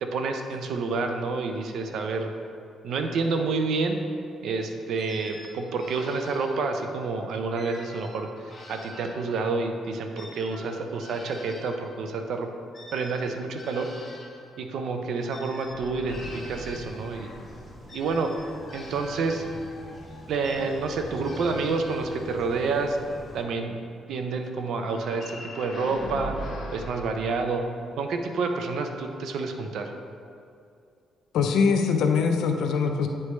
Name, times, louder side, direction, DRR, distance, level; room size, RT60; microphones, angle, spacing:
voice 1, 0.0-2.3 2.8-4.0 4.4-12.5 12.9-13.9 14.6-17.3 17.9-18.3 18.7-19.4 20.3-23.0 23.3-23.8 24.1-27.6 28.0-29.9, right 4 dB, 75° right, 5 dB, 0.6 m, -29 dB
sound 1, 5.0-7.0 7.6-9.6 10.1-14.5 15.3-17.3 17.9-19.9 20.4-22.4, left 1 dB, 25° left, 1.4 m, -47 dB
sound 2, 15.6-17.7 18.3-20.7 24.8-28.0, equal, 60° left, 1.0 m, -41 dB
sound 3, 16.1-23.4, equal, 10° left, 1.0 m, -45 dB
voice 2, 31.3-33.1, left 5 dB, 80° left, 4 dB, 0.5 m, -22 dB
9.4 x 3.2 x 3.2 m, 2.4 s
cardioid pair, 90°, 0 cm